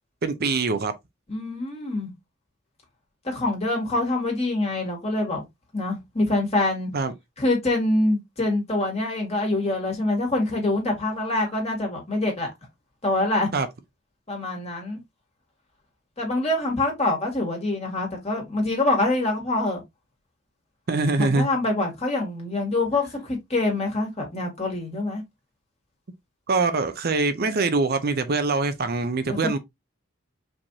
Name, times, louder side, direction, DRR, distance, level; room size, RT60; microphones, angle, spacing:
voice 1, 0.2-0.9 6.9-7.1 13.5-13.7 20.9-21.5 26.5-29.6, right 3 dB, 50° right, 0.6 m, -23 dB
voice 2, 1.3-2.1 3.2-5.4 5.7-6.9 7.4-12.5 13.0-13.5 14.3-15.0 16.2-19.8 21.2-25.2 29.3-29.6, left 2 dB, 35° left, 2.1 m, -25 dB
5.1 x 3.5 x 2.8 m
head